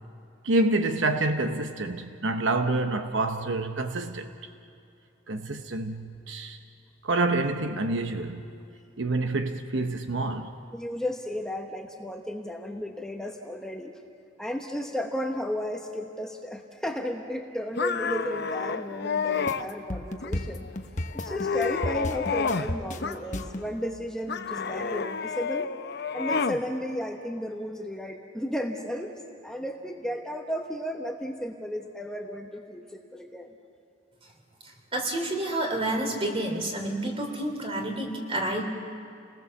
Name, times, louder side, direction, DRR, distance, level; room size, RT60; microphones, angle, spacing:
voice 1, 0.4-4.3 5.3-6.6 7.0-8.4 9.0-10.5, right 2 dB, 70° right, 0.9 m, -27 dB
voice 2, 10.7-13.9 14.4-20.7 21.1-25.7 26.1-29.2 29.4-33.6, equal, 5° left, 1.0 m, -34 dB
sound 1, 17.8-19.7 20.2-20.7 21.1-22.7 23.0-23.7 24.3-26.6, left 5 dB, 60° left, 0.7 m, -30 dB
sound 2, 19.5-23.7, left 1 dB, 40° left, 1.1 m, -33 dB
voice 3, 34.9-38.6, right 1 dB, 30° right, 3.1 m, -29 dB
29.5 x 20.0 x 7.0 m
head